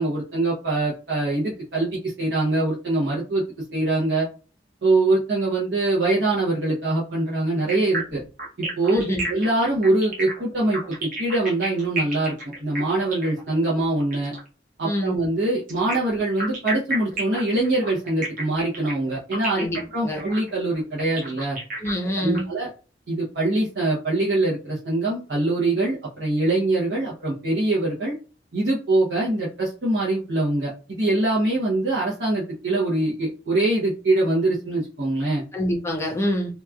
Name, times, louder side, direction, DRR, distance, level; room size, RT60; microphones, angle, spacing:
voice 1, 0.0-3.4 3.7-4.3 4.8-8.2 8.6-14.3 14.8-21.6 22.2-22.7 23.1-28.1 28.5-35.4, right 2 dB, 75° right, 0.8 m, -23 dB
sound 1, 7.7-14.5 15.7-22.4, right 2 dB, 50° right, 1.0 m, -32 dB
voice 2, 8.9-9.3 14.8-15.2 19.5-20.2 21.8-22.5 35.5-36.5, equal, 15° left, 0.6 m, -26 dB
2.9 x 2.3 x 2.3 m
head